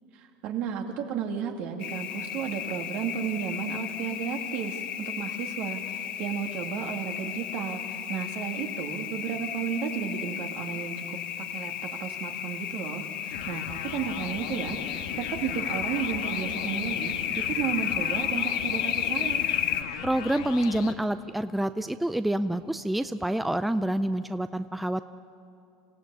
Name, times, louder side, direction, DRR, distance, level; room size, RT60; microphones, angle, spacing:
voice 1, 0.1-19.5, right 7 dB, 55° right, 3 dB, 2.5 m, -33 dB
sound 1, 1.8-19.8, left 10 dB, 50° left, 1.6 m, -33 dB
sound 2, 13.3-20.9, left 9 dB, 85° left, 1.4 m, -39 dB
voice 2, 20.0-25.0, right 1 dB, 5° right, 11 dB, 0.5 m, -27 dB
26.0 x 16.0 x 8.5 m, 2.6 s
supercardioid pair, 115°, 3 cm